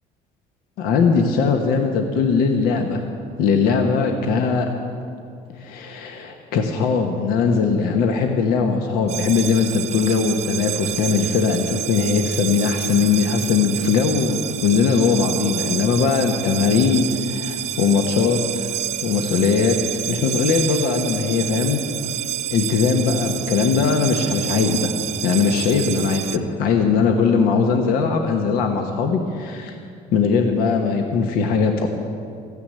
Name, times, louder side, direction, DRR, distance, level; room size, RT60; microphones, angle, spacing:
voice 1, 0.8-3.0 3.4-4.7 5.5-18.7 19.0-19.8 20.1-21.8 22.5-24.9 25.2-29.7 30.1-31.9, left 5 dB, 75° left, 4 dB, 1.2 m, -20 dB
sound 1, 9.1-26.4, right 12 dB, 50° right, 0.6 m, -29 dB
14.5 x 9.7 x 8.7 m, 2.4 s
cardioid pair, 110°, 15 cm